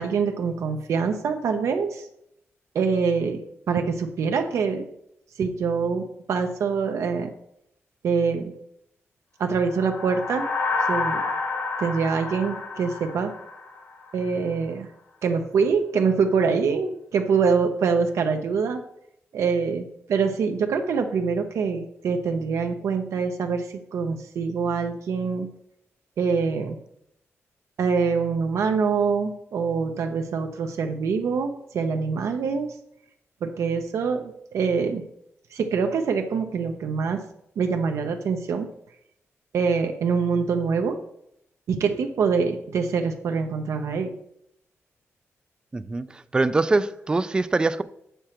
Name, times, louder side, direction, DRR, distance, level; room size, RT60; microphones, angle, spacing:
voice 1, 0.0-2.0 2.7-3.4 3.7-4.9 5.4-7.3 8.0-8.5 9.4-10.5 10.9-11.2 11.8-13.3 14.1-14.9 15.2-18.8 19.3-25.5 26.2-26.8 27.8-32.7 33.4-35.0 35.5-37.2 37.6-38.7 39.5-41.0 41.7-44.1, right 5 dB, 80° right, 0.7 m, -24 dB
sound 1, 9.6-14.2, left 3 dB, 50° left, 1.3 m, -29 dB
voice 2, 45.7-47.8, right 3 dB, 15° right, 0.3 m, -23 dB
7.6 x 6.7 x 4.4 m
wide cardioid pair, 175°, 5 cm